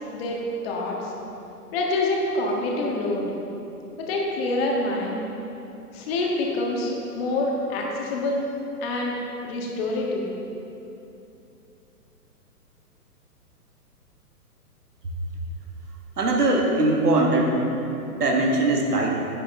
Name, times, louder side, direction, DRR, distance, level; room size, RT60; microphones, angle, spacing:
voice 1, 0.6-1.0 1.7-3.3 4.1-5.2 5.9-8.4 8.8-9.2 9.4-10.3, left 2 dB, 40° left, -1 dB, 1.7 m, -26 dB
voice 2, 16.2-17.6 18.1-19.1, right 2 dB, 75° right, 0 dB, 1.7 m, -21 dB
10.5 x 8.1 x 3.7 m, 2.9 s
figure-of-eight pair, 125°, 47 cm